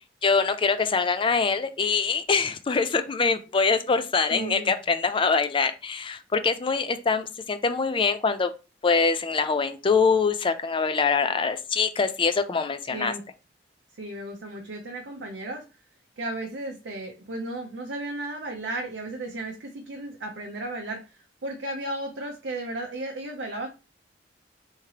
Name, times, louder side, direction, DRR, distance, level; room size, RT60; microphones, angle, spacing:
voice 1, 0.2-8.5 8.8-13.1, left 5 dB, 30° left, 0.4 m, -24 dB
voice 2, 4.3-4.7 12.9-13.2 14.0-15.6 16.2-23.7, right 2 dB, 70° right, 0.6 m, -34 dB
3.5 x 3.2 x 2.8 m
head